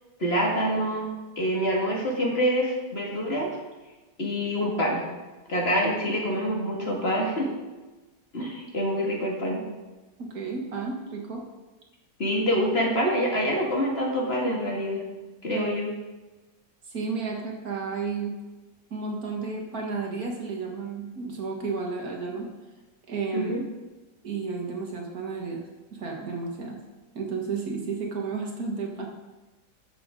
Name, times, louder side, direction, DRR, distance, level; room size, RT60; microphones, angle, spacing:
voice 1, 0.2-1.1 1.4-3.5 4.2-5.0 5.5-7.5 8.3-9.6 12.2-15.0 15.4-15.9 23.3-23.6, equal, 45° left, -2 dB, 2.3 m, -26 dB
voice 2, 10.2-11.4 15.5-15.7 16.9-18.3 18.9-22.5 23.1-23.6 24.2-25.6 25.9-26.8 27.1-29.1, right 4 dB, 80° right, 0 dB, 2.2 m, -32 dB
12.5 x 7.0 x 3.8 m, 1.2 s
omnidirectional pair, 1.5 m